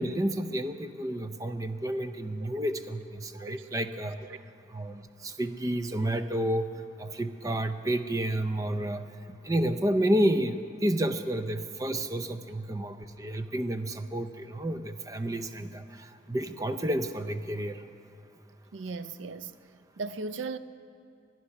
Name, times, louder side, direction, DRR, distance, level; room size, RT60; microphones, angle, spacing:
voice 1, 0.0-4.2 4.7-6.7 7.0-9.1 9.4-17.8, right 1 dB, 20° right, 0.5 m, -30 dB
voice 2, 3.4-3.7 4.2-4.4 18.7-19.6 20.0-20.6, right 4 dB, 85° right, 0.5 m, -37 dB
21.0 x 10.5 x 5.8 m
head